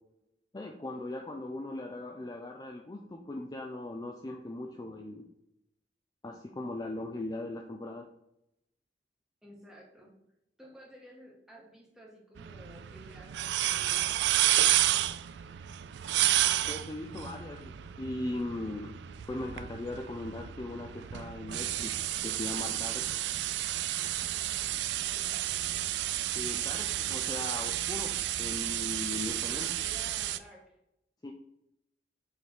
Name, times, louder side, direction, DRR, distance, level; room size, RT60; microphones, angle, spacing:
voice 1, 0.5-5.2 6.2-8.1 16.7-19.0 19.3-21.9 22.2-23.2 26.3-29.7 31.2-31.3, left 2 dB, 20° left, 2 dB, 0.5 m, -39 dB
voice 2, 9.4-10.2 10.6-13.3 13.7-15.0 25.1-25.5 29.5-30.8, equal, 5° right, -2 dB, 1.6 m, -53 dB
sound 1, 12.4-30.4, right 13 dB, 70° right, 0.3 m, -31 dB
6.4 x 3.5 x 4.5 m, 0.82 s
head